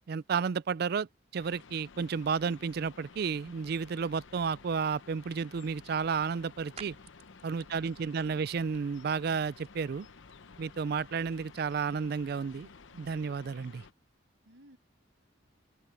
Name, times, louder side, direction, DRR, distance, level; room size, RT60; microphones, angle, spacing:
voice 1, 0.1-1.1 1.3-7.0 7.4-10.1 10.6-12.7 12.9-13.8, right 5 dB, 55° right, 0.4 m, -32 dB
sound 1, 1.4-13.9, left 4 dB, 80° left, 0.8 m, -54 dB
sound 2, 5.5-14.2, right 6 dB, 35° right, 3.8 m, -59 dB
voice 2, 7.6-8.5 14.5-14.8, equal, 75° right, 7.3 m, -59 dB
open air
head